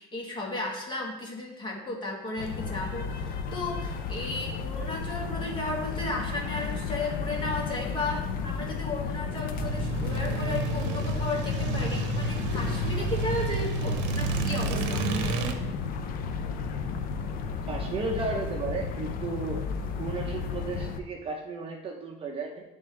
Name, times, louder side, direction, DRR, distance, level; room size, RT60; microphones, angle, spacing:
voice 1, 0.0-15.3, left 2 dB, 25° left, -1 dB, 1.4 m, -34 dB
sound 1, 2.4-21.0, left 5 dB, 50° left, 0.6 m, -33 dB
sound 2, 9.5-15.5, right 3 dB, 80° right, 0.8 m, -30 dB
voice 2, 17.7-19.6 20.0-22.6, right 3 dB, 30° right, 1 dB, 0.7 m, -34 dB
10.0 x 3.5 x 3.2 m, 0.98 s
cardioid pair, 145°, 19 cm